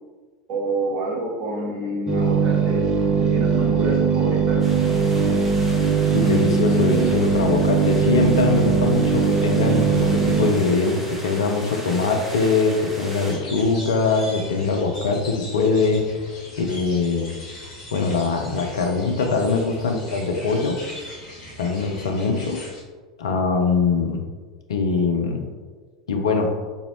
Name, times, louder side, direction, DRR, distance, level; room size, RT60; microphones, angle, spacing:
voice 1, 0.5-2.9 3.2-4.6, right 2 dB, 55° right, -2 dB, 0.9 m, -28 dB
sound 1, 2.1-10.5, right 6 dB, 30° right, 0.5 m, -20 dB
sound 2, 4.6-13.3, equal, 5° right, 0.9 m, -36 dB
voice 2, 6.1-16.0 16.6-17.3 17.9-20.8 21.6-22.6 23.2-24.2 24.7-25.5 26.1-26.5, left 4 dB, 65° left, 3 dB, 0.5 m, -22 dB
sound 3, 13.3-22.8, left 1 dB, 35° left, 1.3 m, -40 dB
3.9 x 2.7 x 2.9 m, 1.5 s
figure-of-eight pair, 80°, 3 cm